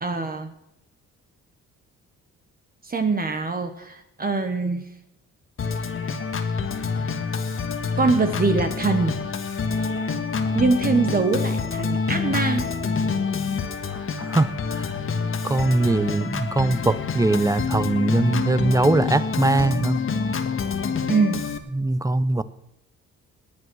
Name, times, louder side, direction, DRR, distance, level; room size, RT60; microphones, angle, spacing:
voice 1, 0.0-0.5 2.8-4.8 8.0-9.2 10.5-12.7 21.1-21.4, right 4 dB, 30° right, 7 dB, 1.3 m, -23 dB
Organ, 5.6-21.6, left 5 dB, 45° left, 1.7 m, -27 dB
voice 2, 14.2-14.9 15.4-20.0 21.7-22.4, right 2 dB, 10° right, 16 dB, 0.7 m, -21 dB
19.0 x 9.3 x 6.3 m, 0.83 s
cardioid pair, 90°, 30 cm